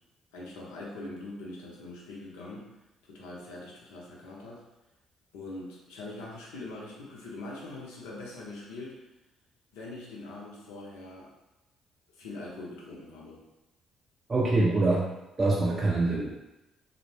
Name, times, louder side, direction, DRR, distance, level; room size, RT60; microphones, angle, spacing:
voice 1, 0.3-2.7 3.1-4.6 5.3-9.0 9.7-11.3 12.1-13.4, left 2 dB, 80° left, -4 dB, 0.6 m, -42 dB
voice 2, 14.3-15.1 15.4-16.3, right 2 dB, 35° right, -5 dB, 0.4 m, -24 dB
2.0 x 2.0 x 3.1 m, 0.94 s
hypercardioid pair, 50°, 0 cm